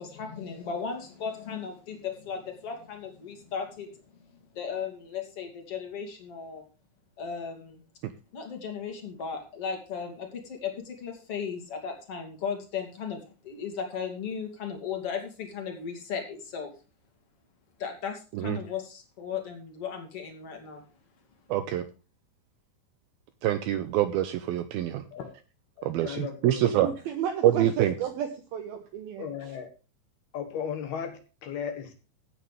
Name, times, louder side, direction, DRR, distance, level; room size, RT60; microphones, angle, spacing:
voice 1, 0.0-4.0 4.5-6.6 7.2-7.8 8.3-16.7 17.8-20.8, left 6 dB, 35° left, 4 dB, 3.1 m, -36 dB
voice 2, 21.5-21.8 23.4-25.0 25.8-26.9 27.4-27.9, right 12 dB, 85° right, 11 dB, 2.2 m, -25 dB
voice 3, 25.8-26.9 29.2-29.7 30.3-31.9, left 7 dB, 65° left, 7 dB, 3.3 m, -36 dB
voice 4, 26.8-29.6, right 9 dB, 70° right, 6 dB, 2.6 m, -33 dB
16.0 x 9.1 x 3.3 m, 0.33 s
omnidirectional pair, 5.2 m